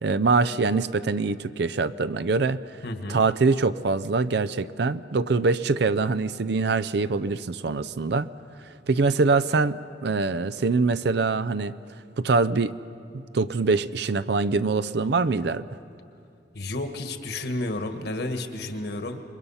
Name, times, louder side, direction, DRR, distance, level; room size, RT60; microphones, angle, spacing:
voice 1, 0.0-2.6 3.1-8.3 8.9-11.7 12.2-12.8 13.1-15.6, right 4 dB, 65° right, 15 dB, 0.5 m, -24 dB
voice 2, 2.8-3.2 16.5-19.2, left 2 dB, 60° left, 7 dB, 1.5 m, -31 dB
27.0 x 22.5 x 5.6 m, 2.5 s
head